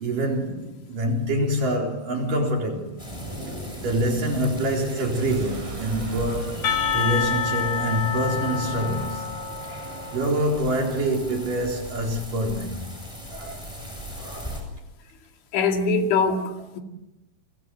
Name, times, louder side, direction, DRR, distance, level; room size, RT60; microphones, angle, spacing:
voice 1, 0.0-3.0 3.8-6.7 6.9-9.2 10.1-12.8 13.3-13.6 14.2-14.6, right 1 dB, 45° right, 5.3 m, -26 dB
sound 1, 3.0-14.6, equal, 5° left, 7.3 m, -38 dB
sound 2, 5.1-12.8, right 3 dB, 65° right, 7.4 m, -40 dB
Percussion / Church bell, 6.6-11.2, left 7 dB, 60° left, 4.5 m, -29 dB
voice 2, 15.5-16.8, left 4 dB, 75° left, 4.7 m, -23 dB
29.5 x 25.0 x 7.8 m
omnidirectional pair, 5.4 m